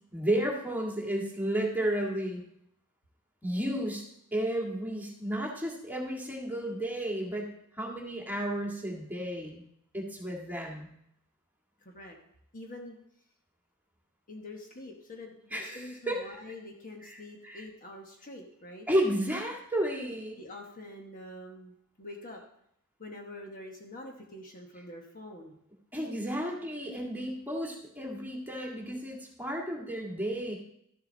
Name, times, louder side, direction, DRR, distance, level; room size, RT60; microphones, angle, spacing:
voice 1, 0.1-2.4 3.4-4.0 4.3-9.6 9.9-10.9 15.5-16.4 17.0-17.1 17.4-17.6 18.9-20.4 25.9-30.5, right 1 dB, 10° right, -2 dB, 1.9 m, -32 dB
voice 2, 11.8-12.2 12.5-13.0 14.3-18.9 20.4-22.4 23.0-25.6, left 1 dB, 40° left, 2 dB, 1.2 m, -45 dB
12.5 x 6.8 x 3.9 m, 0.74 s
head